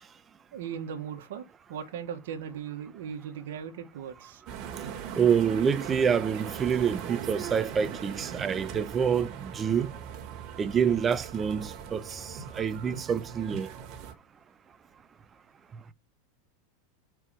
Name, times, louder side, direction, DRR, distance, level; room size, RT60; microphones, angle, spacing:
voice 1, 0.5-1.4 1.7-4.4 7.2-7.3 7.8-7.9 8.3-8.5, right 8 dB, 75° right, 1.4 m, -38 dB
sound 1, 4.5-14.1, right 8 dB, 45° right, 1.7 m, -40 dB
voice 2, 5.2-10.0 10.6-13.7, right 7 dB, 25° right, 0.7 m, -27 dB
4.9 x 4.7 x 6.2 m
supercardioid pair, 120°, 0 cm